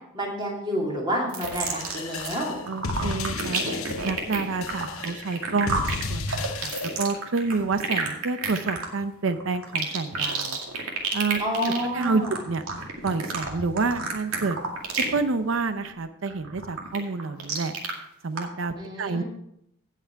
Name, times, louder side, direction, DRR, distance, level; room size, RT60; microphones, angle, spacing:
voice 1, 0.1-2.6 11.4-12.3 18.8-19.2, equal, 20° right, -3 dB, 2.6 m, -29 dB
sound 1, 1.3-2.4 2.7-15.2 15.5-15.9 16.3-17.9 18.4-18.5, right 4 dB, 90° right, 2.4 m, -30 dB
sound 2, 1.4-7.1, left 3 dB, 80° left, 0.9 m, -33 dB
voice 2, 2.7-3.6 4.0-5.8 6.1-10.6 11.1-11.4 11.9-12.6 13.0-14.6 14.9-17.7 18.2-19.2, right 4 dB, 65° right, 10 dB, 0.6 m, -28 dB
16.5 x 5.8 x 4.6 m, 0.77 s
head